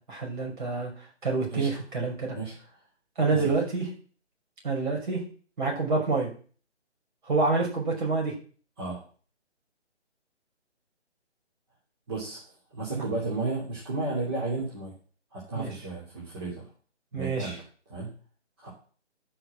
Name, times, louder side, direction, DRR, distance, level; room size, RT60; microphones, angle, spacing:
voice 1, 0.1-0.9 1.2-2.4 3.2-3.9 4.6-5.2 5.6-6.3 7.3-8.3 12.9-13.0 15.5-15.7 17.1-17.6, right 3 dB, 40° right, -1 dB, 5.9 m, -27 dB
voice 2, 12.1-12.4 12.7-14.9 15.3-16.6 17.1-18.1 18.6-18.7, right 3 dB, 20° right, -6 dB, 3.0 m, -33 dB
12.0 x 5.8 x 7.6 m, 0.41 s
figure-of-eight pair, 165°, 35 cm